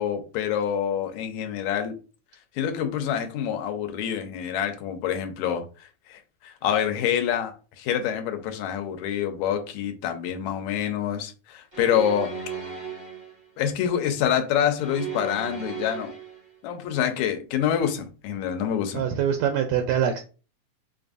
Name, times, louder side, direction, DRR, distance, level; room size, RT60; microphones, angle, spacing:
voice 1, 0.0-2.0 2.6-5.7 6.1-12.3 13.6-16.1 16.6-19.0, left 9 dB, 80° left, 2.0 m, -26 dB
sound 1, 11.7-13.5 14.8-16.5, right 6 dB, 30° right, 0.6 m, -36 dB
voice 2, 18.9-20.2, right 8 dB, 80° right, 1.7 m, -24 dB
5.2 x 2.5 x 2.5 m
omnidirectional pair, 3.3 m